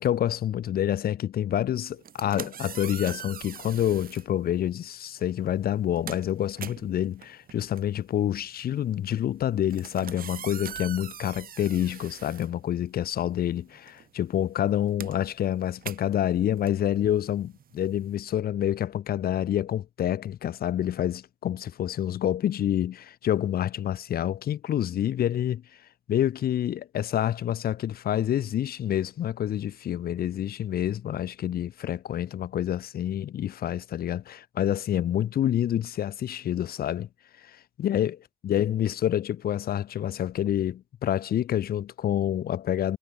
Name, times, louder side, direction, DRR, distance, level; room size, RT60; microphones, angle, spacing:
voice 1, 0.0-25.6 26.1-37.1 37.4-38.2 38.4-43.0, left 11 dB, 75° left, 4.6 m, -27 dB
sound 1, 1.9-4.3 5.2-5.4 5.7-13.2 13.5-18.1, right 9 dB, 65° right, 3.2 m, -42 dB
hypercardioid pair, 40°, 16 cm